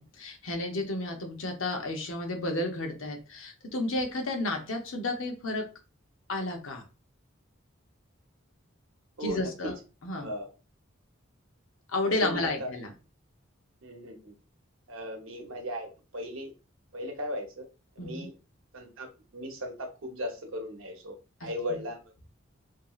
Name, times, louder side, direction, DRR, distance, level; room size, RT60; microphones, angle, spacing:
voice 1, 0.0-5.7 6.3-6.9 9.2-9.7 10.0-10.3 11.9-12.9 18.0-18.3 21.4-21.5, left 2 dB, 75° left, 0.7 m, -32 dB
voice 2, 9.2-9.7 10.2-10.5 12.0-12.7 13.8-14.3 14.9-16.5 16.9-17.7 18.0-18.3 18.7-22.0, equal, 75° right, 0.8 m, -37 dB
2.9 x 2.6 x 2.3 m
head